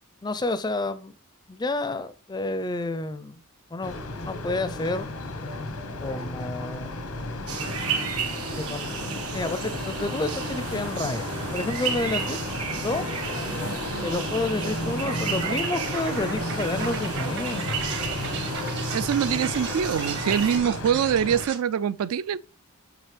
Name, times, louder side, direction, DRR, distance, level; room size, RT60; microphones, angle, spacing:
voice 1, 0.2-1.1 1.5-3.4 3.7-5.1 6.0-6.9 8.6-9.1 9.3-12.4 12.8-13.1 14.0-17.7, left 2 dB, 20° left, 0.4 m, -30 dB
sound 1, 3.8-21.5, left 2 dB, 85° left, 1.0 m, -33 dB
sound 2, 7.5-20.6, right 5 dB, 85° right, 1.4 m, -33 dB
sound 3, 14.6-21.6, right 6 dB, 50° right, 1.0 m, -37 dB
voice 2, 18.9-22.4, right 8 dB, 70° right, 0.3 m, -24 dB
7.3 x 5.2 x 3.3 m
head